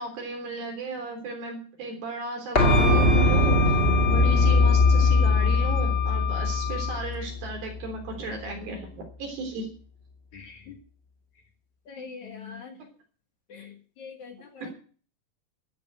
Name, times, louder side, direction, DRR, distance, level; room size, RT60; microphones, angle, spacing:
voice 1, 0.0-9.7 14.6-14.7, right 3 dB, 60° right, 3 dB, 5.3 m, -35 dB
sound 1, 2.5-8.2 8.5-8.6, left 2 dB, 70° left, 0.5 m, -21 dB
Wind instrument woodwind instrument, 2.6-7.0, left 7 dB, 35° left, 3.4 m, -30 dB
voice 2, 10.3-10.8 11.9-12.8 13.5-14.7, left 5 dB, 55° left, 3 dB, 2.9 m, -43 dB
13.0 x 8.6 x 8.0 m, 0.41 s
omnidirectional pair, 4.7 m